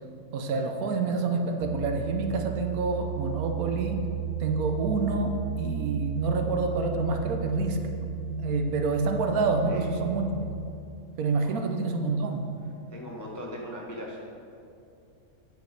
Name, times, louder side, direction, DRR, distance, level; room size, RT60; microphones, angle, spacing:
voice 1, 0.3-4.0 4.4-10.5 11.2-12.5, right 3 dB, 75° right, 5 dB, 1.2 m, -28 dB
sound 1, 1.6-10.6, right 6 dB, 40° right, 0.5 m, -34 dB
voice 2, 12.9-14.2, left 1 dB, 20° left, -2 dB, 0.5 m, -39 dB
9.2 x 5.4 x 4.5 m, 2.6 s
omnidirectional pair, 1.6 m